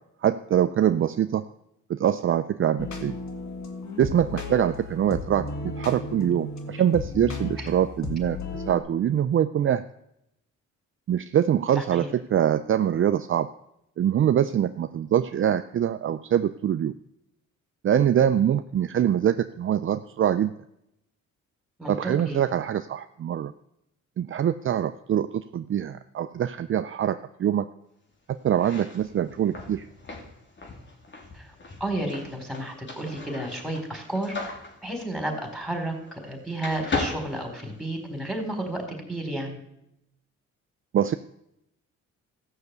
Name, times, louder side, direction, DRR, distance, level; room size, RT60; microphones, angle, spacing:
voice 1, 0.2-1.4 1.9-3.2 4.0-9.8 11.1-13.5 14.0-16.9 17.8-20.5 21.9-23.5 24.2-27.7 28.4-29.9 40.9-41.1, right 10 dB, 45° right, 10 dB, 0.5 m, -24 dB
sound 1, 2.8-8.8, left 3 dB, 65° left, 2.0 m, -35 dB
voice 2, 11.7-12.1 21.8-22.4 31.3-31.5 31.8-34.4 34.8-39.6, right 1 dB, ahead, 2 dB, 4.4 m, -32 dB
sound 2, 28.5-36.3 36.6-38.2, left 3 dB, 40° left, 3.0 m, -37 dB
14.5 x 6.7 x 8.2 m, 0.80 s
cardioid pair, 90°, 30 cm